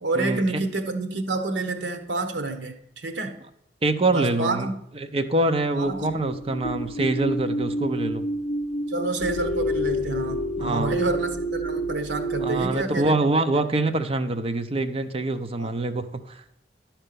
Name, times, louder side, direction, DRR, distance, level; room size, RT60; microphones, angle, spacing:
voice 1, 0.0-3.4 4.1-4.7 5.7-6.1 8.9-13.2 13.5-13.6 15.6-15.7, right 2 dB, 75° right, 7 dB, 1.1 m, -28 dB
voice 2, 3.8-4.7 4.9-8.2 10.6-10.9 12.4-16.4, right 2 dB, 35° right, 8 dB, 0.6 m, -25 dB
sound 1, 5.7-12.8, equal, 45° left, 0.6 m, -29 dB
11.0 x 4.5 x 6.8 m, 0.78 s
head